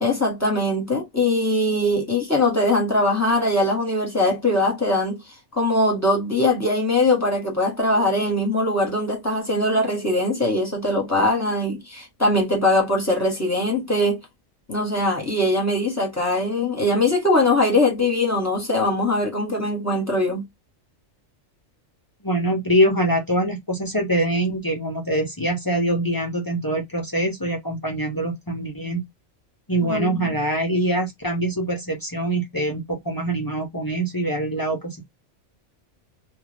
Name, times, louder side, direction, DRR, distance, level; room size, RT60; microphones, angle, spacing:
voice 1, 0.0-5.2 5.5-14.2 14.7-20.4 29.8-30.3, left 1 dB, 15° left, 1.1 m, -21 dB
voice 2, 22.2-29.0 29.7-35.0, right 1 dB, 30° left, 0.4 m, -24 dB
2.4 x 2.2 x 3.2 m
omnidirectional pair, 1.3 m